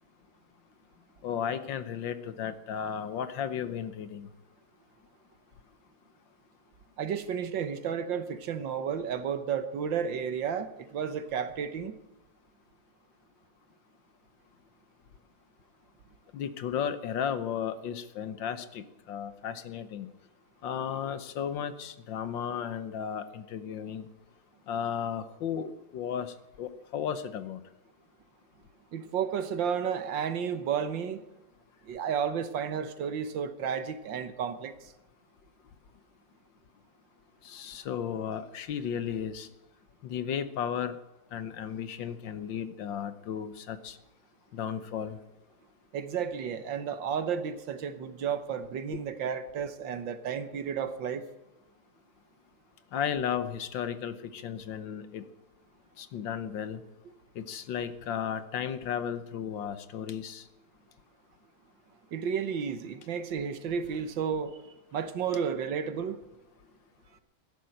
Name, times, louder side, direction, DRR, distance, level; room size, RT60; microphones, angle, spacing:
voice 1, 1.2-4.3 16.3-20.1 20.6-24.1 24.7-27.6 37.4-39.5 40.0-40.9 41.3-44.0 44.5-45.2 52.9-55.2 56.0-56.8 57.4-60.4, left 8 dB, 65° left, 12 dB, 1.5 m, -34 dB
voice 2, 7.0-11.9 28.9-31.2 31.8-34.7 45.9-51.3 62.1-64.6 64.9-66.2, right 7 dB, 65° right, 11 dB, 1.7 m, -32 dB
13.5 x 11.0 x 7.7 m, 0.95 s
omnidirectional pair, 2.3 m